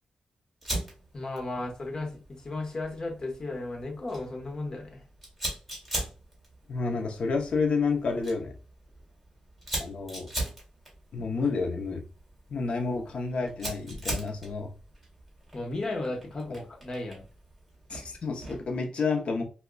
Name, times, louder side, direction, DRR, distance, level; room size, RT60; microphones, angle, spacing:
Fire, 0.6-18.8, right 1 dB, 5° right, 1.8 m, -40 dB
voice 1, 1.1-5.0 15.5-17.2, left 2 dB, 35° left, 0.9 m, -35 dB
voice 2, 6.7-8.5 9.8-10.3 11.1-12.0 12.5-14.7 17.9-19.4, left 4 dB, 60° left, 0.6 m, -29 dB
4.9 x 2.2 x 2.2 m
wide cardioid pair, 130°, 2 cm